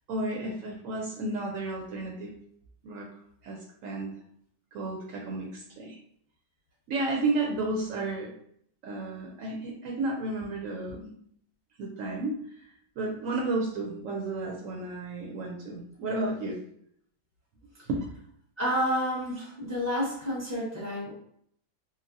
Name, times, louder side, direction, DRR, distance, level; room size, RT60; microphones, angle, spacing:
voice 1, 0.1-2.3 2.8-3.1 3.4-4.2 4.7-6.0 6.9-8.3 8.8-11.1 11.8-12.7 13.0-16.6 17.9-18.0, right 2 dB, 70° right, 0 dB, 0.9 m, -32 dB
voice 2, 18.6-21.1, equal, 15° left, -6 dB, 0.8 m, -29 dB
3.1 x 2.1 x 2.6 m, 0.66 s
omnidirectional pair, 1.6 m